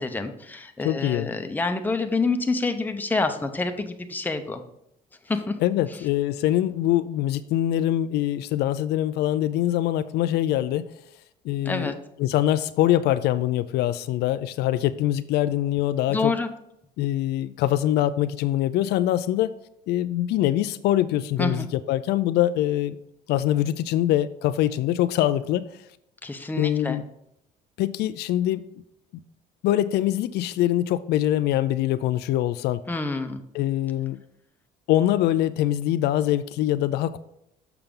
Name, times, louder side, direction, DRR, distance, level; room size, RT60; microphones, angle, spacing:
voice 1, 0.0-4.6 5.3-5.6 11.6-11.9 16.1-16.5 21.4-21.7 26.2-27.0 32.9-33.4, left 3 dB, 10° left, 6 dB, 0.7 m, -27 dB
voice 2, 0.8-1.3 5.6-10.9 11.4-11.9 12.2-16.3 17.0-19.5 19.9-23.0 23.3-25.7 26.6-27.0 27.8-28.6 29.1-29.2 29.6-32.8 33.5-34.2 34.9-37.2, left 13 dB, 75° left, 13 dB, 0.4 m, -23 dB
6.8 x 5.8 x 3.7 m, 0.77 s
cardioid pair, 110°, 17 cm